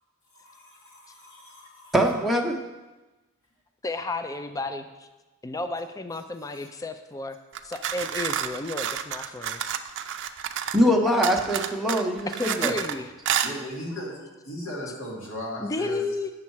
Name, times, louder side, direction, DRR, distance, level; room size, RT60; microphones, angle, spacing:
voice 1, 0.3-1.9 6.5-6.7 13.4-16.0, equal, 65° left, -3 dB, 2.1 m, -37 dB
voice 2, 1.9-2.6 10.7-12.7, equal, ahead, 0 dB, 0.8 m, -23 dB
voice 3, 3.8-5.1 5.4-7.4 7.6-9.6 12.3-13.1 15.6-16.3, left 2 dB, 15° left, 9 dB, 0.4 m, -32 dB
sound 1, 7.5-10.9 11.2-13.0 13.3-13.5, right 9 dB, 60° right, 0.4 m, -30 dB
8.3 x 6.4 x 4.6 m, 1.1 s
head